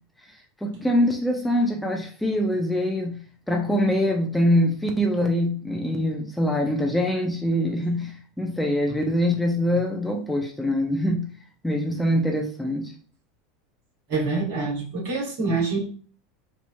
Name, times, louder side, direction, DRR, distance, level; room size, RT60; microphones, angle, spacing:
voice 1, 0.6-3.2 3.5-11.3 11.6-12.9, equal, 5° left, 2 dB, 0.6 m, -24 dB
voice 2, 14.1-15.8, right 3 dB, 55° right, -2 dB, 1.7 m, -26 dB
4.2 x 2.8 x 2.3 m, 0.42 s
figure-of-eight pair, 80°, 0 cm